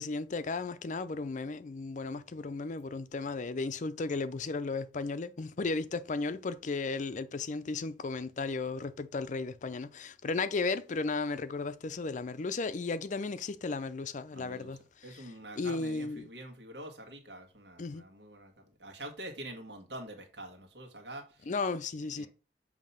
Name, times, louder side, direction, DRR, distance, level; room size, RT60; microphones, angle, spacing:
voice 1, 0.0-14.8 15.6-16.3 17.8-18.0 21.5-22.3, left 3 dB, 45° left, 0.5 m, -35 dB
voice 2, 14.3-21.7 22.0-22.3, right 1 dB, 75° right, 1.6 m, -46 dB
7.2 x 2.9 x 5.5 m
head